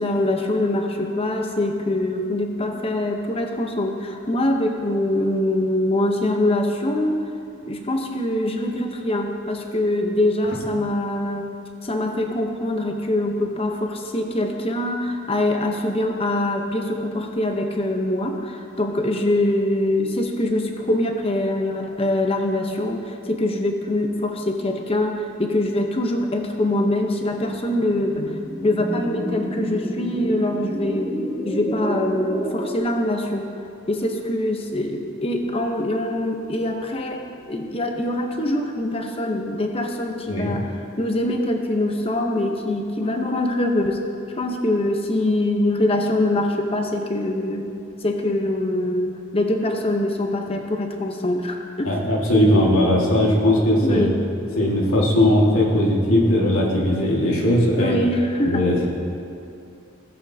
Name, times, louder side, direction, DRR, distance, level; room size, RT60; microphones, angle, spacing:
voice 1, 0.0-7.2 7.7-11.5 11.8-28.3 28.6-31.1 31.4-33.5 33.9-44.0 44.3-47.7 48.0-51.9 53.8-54.2 57.7-58.9, left 1 dB, 25° left, 3 dB, 0.8 m, -23 dB
sound 1, 27.3-32.8, equal, 5° left, 1.2 m, -30 dB
voice 2, 51.8-54.1 54.6-57.9 58.4-58.8, left 1 dB, 80° left, -3 dB, 1.8 m, -18 dB
16.5 x 8.0 x 2.8 m, 2.5 s
head